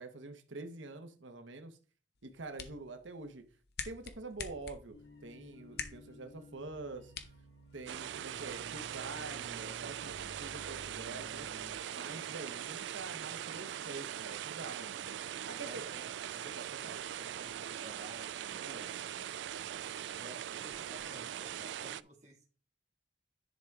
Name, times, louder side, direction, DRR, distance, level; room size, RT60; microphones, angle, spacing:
voice 1, 0.0-1.8 2.2-3.4 3.8-4.9 5.2-7.1 7.7-11.5 11.9-15.2 15.5-15.9 16.5-17.0 18.6-18.9, right 3 dB, 90° right, 8 dB, 1.0 m, -46 dB
sound 1, 2.2-8.2, left 6 dB, 55° left, 0.9 m, -48 dB
sound 2, 4.9-11.8, equal, 80° left, 3.6 m, -54 dB
sound 3, 7.9-22.0, right 10 dB, 70° right, 0.3 m, -41 dB
voice 2, 15.6-16.4 17.2-19.1 20.2-22.6, equal, 40° right, 0 dB, 2.3 m, -54 dB
10.5 x 4.6 x 3.6 m, 0.38 s
head